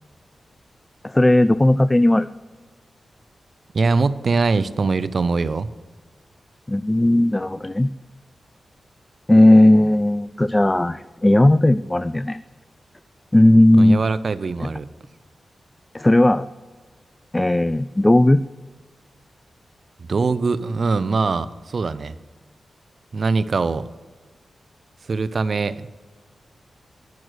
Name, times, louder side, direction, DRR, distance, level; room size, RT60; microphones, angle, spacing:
voice 1, 1.0-2.3 6.7-7.9 9.3-12.4 13.3-14.0 14.6-14.7 15.9-16.5 17.3-18.4, left 1 dB, 20° left, 15 dB, 0.3 m, -16 dB
voice 2, 3.7-5.7 13.8-14.9 20.1-22.2 23.1-23.9 25.1-25.9, right 4 dB, 60° right, 15 dB, 0.5 m, -22 dB
10.5 x 6.1 x 6.4 m, 1.4 s
cardioid pair, 50°, 0 cm